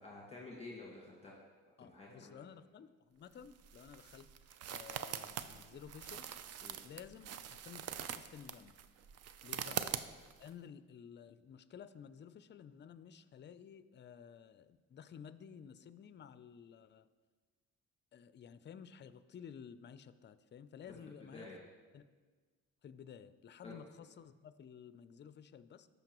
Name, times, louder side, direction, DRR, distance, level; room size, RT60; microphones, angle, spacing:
voice 1, 0.0-1.4 1.8-2.4 6.6-6.8 9.7-9.8 21.2-21.6 23.6-23.8, left 2 dB, 20° left, -4 dB, 1.6 m, -50 dB
voice 2, 1.8-4.3 4.7-6.3 6.8-8.8 9.4-9.8 10.4-17.1 18.1-21.5 21.9-22.0 22.8-25.9, left 8 dB, 35° left, 13 dB, 0.4 m, -53 dB
sound 1, 3.3-10.5, right 9 dB, 55° right, 0.5 m, -44 dB
13.5 x 5.4 x 3.0 m, 1.4 s
cardioid pair, 90°, 30 cm